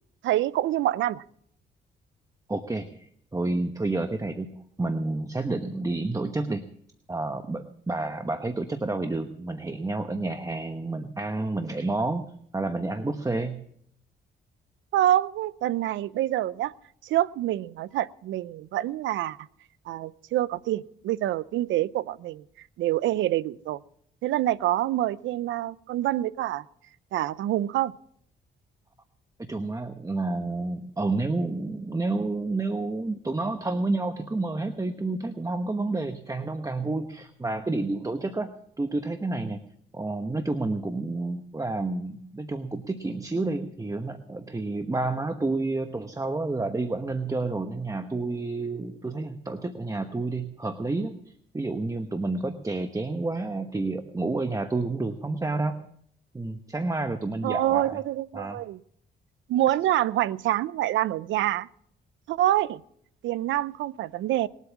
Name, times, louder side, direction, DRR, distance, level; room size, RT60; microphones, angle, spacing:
voice 1, 0.2-1.2 14.9-16.7 17.0-19.4 19.9-22.4 22.8-23.8 24.2-26.6 27.1-27.9 57.4-58.8 59.5-61.7 62.3-62.8 63.2-64.5, right 13 dB, 85° right, 20 dB, 0.5 m, -26 dB
voice 2, 2.5-6.6 7.1-12.3 12.5-13.6 29.4-38.5 38.8-39.6 39.9-55.8 56.3-58.0 58.3-58.6, right 2 dB, 15° right, 8 dB, 1.0 m, -30 dB
20.0 x 8.2 x 7.2 m, 0.68 s
cardioid pair, 80°, 19 cm